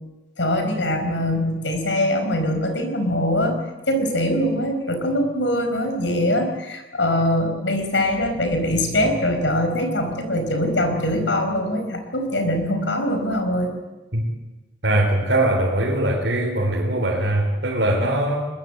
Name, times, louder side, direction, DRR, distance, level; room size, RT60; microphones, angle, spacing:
voice 1, 0.4-13.7, left 1 dB, 80° left, 6 dB, 5.0 m, -22 dB
voice 2, 14.8-18.5, right 1 dB, 75° right, -2 dB, 4.0 m, -21 dB
22.5 x 20.0 x 8.1 m, 1.2 s
head